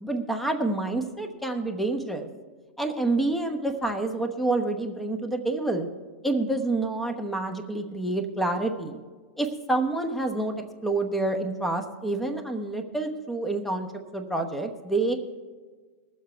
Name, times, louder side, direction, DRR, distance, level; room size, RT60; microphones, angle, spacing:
voice 1, 0.0-2.3 2.8-5.9 6.2-9.0 9.4-10.5 10.8-15.2, right 2 dB, ahead, 5 dB, 1.0 m, -28 dB
20.0 x 7.5 x 4.5 m, 1.4 s
hypercardioid pair, 140°, 7 cm